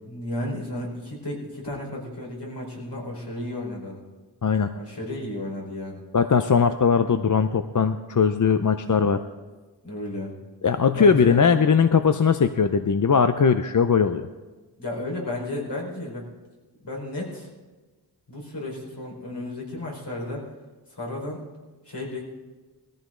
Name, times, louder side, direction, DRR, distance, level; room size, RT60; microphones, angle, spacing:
voice 1, 0.0-4.0 4.7-6.0 8.7-9.1 9.8-10.3 10.9-11.4 14.8-16.2 16.8-17.5 18.3-20.4 20.9-21.4 21.8-22.3, left 1 dB, 70° left, -3 dB, 4.5 m, -33 dB
voice 2, 6.1-9.2 10.6-14.3, left 6 dB, 45° left, 9 dB, 0.6 m, -20 dB
19.0 x 14.5 x 3.8 m, 1.3 s
wide cardioid pair, 70°, 43 cm